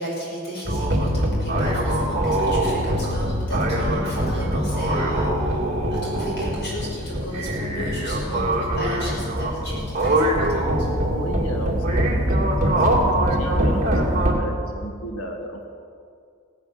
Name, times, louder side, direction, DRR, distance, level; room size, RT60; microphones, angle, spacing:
voice 1, 0.0-10.9, equal, 50° left, -4 dB, 5.4 m, -34 dB
sound 1, 0.7-14.3, right 1 dB, 35° right, 2.2 m, -23 dB
voice 2, 11.1-13.9 14.2-15.7, right 1 dB, 85° left, 3 dB, 1.8 m, -34 dB
16.5 x 11.0 x 7.3 m, 2.3 s
head